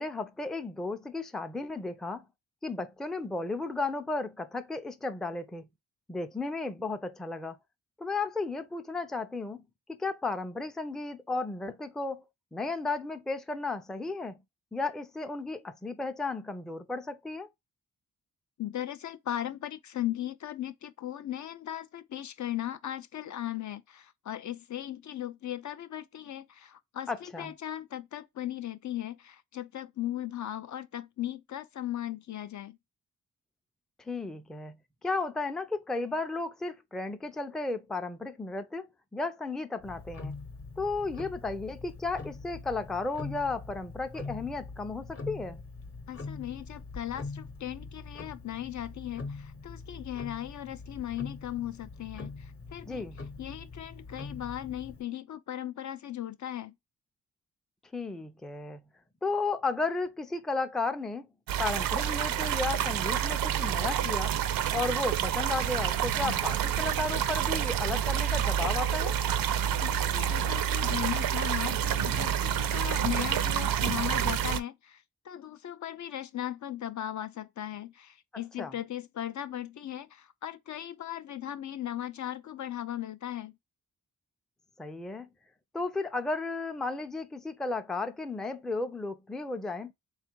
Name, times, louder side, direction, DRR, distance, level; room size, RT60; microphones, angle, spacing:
voice 1, 0.0-2.2 2.6-5.6 6.1-7.6 8.0-9.6 9.9-12.2 12.5-14.4 14.7-17.5 27.1-27.5 34.1-34.7 35.0-38.9 39.1-40.3 40.8-45.6 52.9-53.2 57.9-58.8 59.2-61.3 61.6-64.3 64.7-69.2 78.6-78.7 84.8-85.3 85.7-89.9, left 3 dB, ahead, 0.4 m, -34 dB
voice 2, 18.6-32.8 46.1-53.0 53.4-56.7 69.8-83.5, left 12 dB, 60° left, 0.5 m, -37 dB
Tick-tock, 39.8-55.0, left 3 dB, 40° left, 0.9 m, -43 dB
sound 1, 61.5-74.6, right 9 dB, 85° right, 0.5 m, -28 dB
3.5 x 2.4 x 4.4 m
cardioid pair, 100°, 33 cm